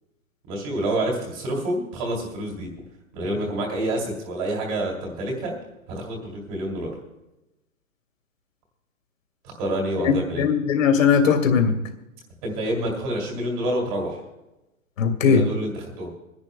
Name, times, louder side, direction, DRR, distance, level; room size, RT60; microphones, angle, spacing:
voice 1, 0.5-2.7 3.1-5.5 5.9-6.9 9.4-10.4 12.4-14.2 15.2-16.1, right 1 dB, 25° right, -1 dB, 2.6 m, -28 dB
voice 2, 10.0-11.7 15.0-15.4, left 6 dB, 65° left, 5 dB, 1.8 m, -19 dB
27.0 x 10.5 x 2.2 m, 0.96 s
hypercardioid pair, 175°, 42 cm